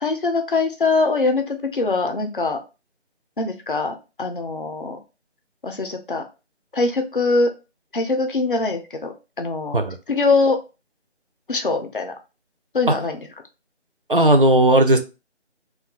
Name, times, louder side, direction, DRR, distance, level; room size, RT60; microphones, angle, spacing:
voice 1, 0.0-2.6 3.4-5.0 5.6-6.2 6.7-7.5 7.9-9.8 10.1-10.6 11.5-12.1 12.7-13.2, left 3 dB, 50° left, 6 dB, 0.5 m, -22 dB
voice 2, 14.1-15.0, right 1 dB, 50° right, 6 dB, 0.4 m, -15 dB
2.3 x 2.2 x 3.6 m, 0.29 s
figure-of-eight pair, 170°, 35 cm